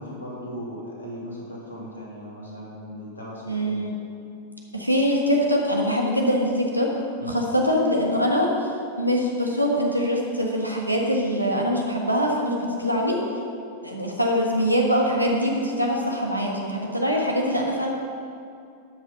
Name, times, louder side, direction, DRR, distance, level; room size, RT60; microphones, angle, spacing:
voice 1, 0.0-4.0 7.2-7.4, equal, 75° left, -4 dB, 2.9 m, -37 dB
voice 2, 3.5-4.0 4.7-6.9 7.3-13.2 13.8-17.9, equal, 90° right, -1 dB, 1.5 m, -23 dB
12.5 x 6.4 x 5.5 m, 2.5 s
figure-of-eight pair, 90°, 0 cm